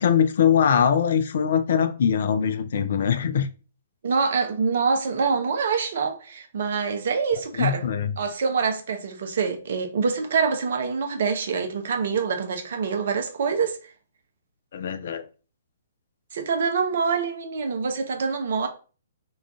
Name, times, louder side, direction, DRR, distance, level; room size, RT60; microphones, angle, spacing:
voice 1, 0.0-3.5 7.6-8.1 14.7-15.2, left 8 dB, 50° left, 0.3 m, -22 dB
voice 2, 4.0-7.8 8.2-13.8 16.3-18.7, right 5 dB, 50° right, 0.6 m, -25 dB
2.4 x 2.4 x 3.4 m
figure-of-eight pair, 120°, 0 cm